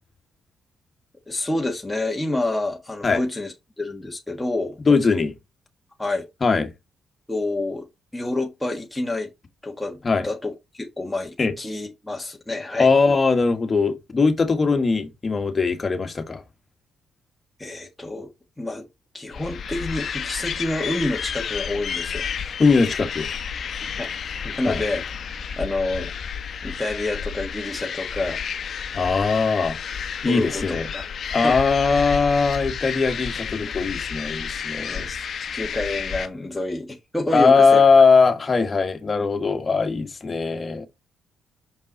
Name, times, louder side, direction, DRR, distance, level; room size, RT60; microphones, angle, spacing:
voice 1, 1.3-4.8 6.0-6.2 7.3-7.9 8.1-9.3 9.6-10.0 10.2-12.9 17.6-18.3 18.6-18.9 19.1-22.5 24.0-24.1 24.4-25.0 25.6-26.1 26.6-28.4 30.2-31.1 31.4-31.6 34.8-35.2 35.5-37.9, left 2 dB, 10° left, 1.6 m, -28 dB
voice 2, 4.8-5.3 6.4-6.7 10.0-10.3 11.4-11.5 12.8-16.4 22.6-23.3 24.6-24.8 28.9-29.8 30.2-30.9 31.3-35.1 37.3-40.9, left 4 dB, 35° left, 1.7 m, -20 dB
sound 1, 19.3-36.3, left 7 dB, 60° left, 1.0 m, -31 dB
6.3 x 5.3 x 4.0 m
supercardioid pair, 65°, 0 cm